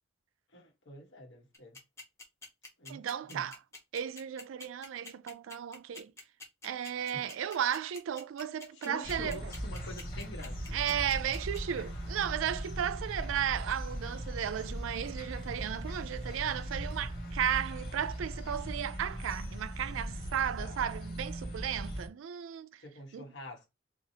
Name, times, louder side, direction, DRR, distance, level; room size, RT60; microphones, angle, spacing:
voice 1, 0.5-1.8 2.8-3.4 7.1-7.2 8.7-10.8 20.6-20.8 22.8-23.7, left 1 dB, 65° left, 1.3 m, -46 dB
sound 1, 1.5-11.6, left 3 dB, 15° left, 1.0 m, -46 dB
voice 2, 2.9-3.6 3.9-6.1 6.6-9.5 10.7-22.8 23.1-23.3, right 9 dB, 90° right, 0.3 m, -34 dB
sound 2, 9.0-22.1, equal, 50° left, 2.1 m, -39 dB
4.7 x 2.4 x 2.7 m
head